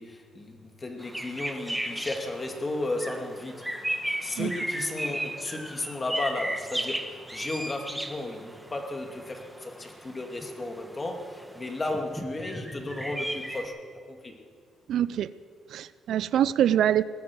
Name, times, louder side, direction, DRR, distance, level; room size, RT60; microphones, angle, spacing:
voice 1, 0.0-3.7 4.2-13.8 14.1-14.4, left 2 dB, 25° left, 3 dB, 2.4 m, -34 dB
sound 1, 1.0-13.6, right 1 dB, 5° right, 1.3 m, -36 dB
voice 2, 14.9-15.3 15.7-17.0, right 10 dB, 75° right, 17 dB, 0.4 m, -24 dB
20.0 x 9.5 x 7.6 m, 2.1 s
cardioid pair, 90°, 0 cm